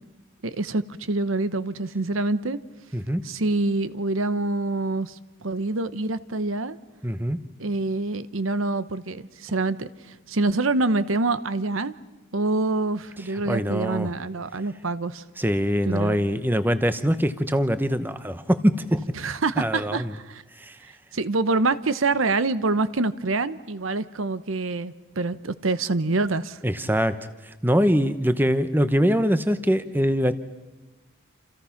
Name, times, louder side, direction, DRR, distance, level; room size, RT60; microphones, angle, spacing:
voice 1, 0.4-2.6 3.2-6.8 7.6-11.9 12.3-15.2 15.8-16.1 19.2-20.4 21.1-26.6, right 3 dB, 80° right, 14 dB, 0.9 m, -26 dB
voice 2, 2.9-3.2 7.0-7.4 13.3-14.1 15.4-19.0 19.6-20.1 20.6-20.8 26.6-27.2 27.4-30.3, equal, 10° right, 11 dB, 0.9 m, -23 dB
28.5 x 28.0 x 5.9 m, 1.1 s
head